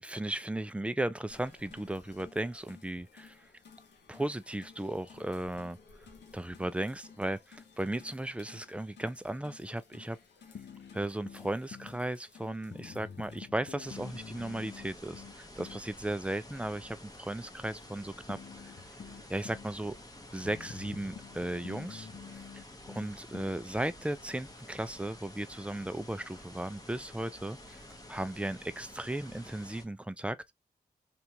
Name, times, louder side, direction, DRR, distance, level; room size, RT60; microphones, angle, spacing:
voice 1, 0.0-3.5 4.1-5.8 6.3-10.2 10.9-18.4 18.6-18.7 19.3-19.9 20.3-27.8 28.1-30.4, right 1 dB, 5° right, 0.5 m, -36 dB
sound 1, 1.3-13.4, left 5 dB, 80° left, 0.9 m, -57 dB
sound 2, 10.6-12.0 12.7-15.9 18.3-19.7 20.4-23.6, left 6 dB, 60° left, 0.6 m, -48 dB
sound 3, 13.8-29.8, left 1 dB, 20° left, 0.9 m, -51 dB
3.4 x 2.5 x 2.9 m
cardioid pair, 45°, 18 cm